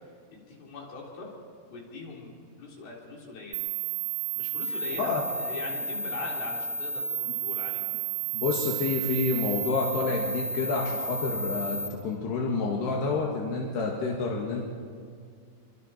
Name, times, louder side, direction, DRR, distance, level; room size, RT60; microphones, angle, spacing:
voice 1, 0.3-1.3 1.7-2.3 2.6-3.7 4.3-7.9, left 3 dB, 65° left, -2 dB, 5.5 m, -41 dB
sound 1, 3.5-11.9, right 5 dB, 30° right, 2.3 m, -32 dB
voice 2, 8.3-14.6, left 4 dB, 85° left, -2 dB, 4.0 m, -29 dB
27.0 x 24.5 x 4.4 m, 2.2 s
omnidirectional pair, 4.6 m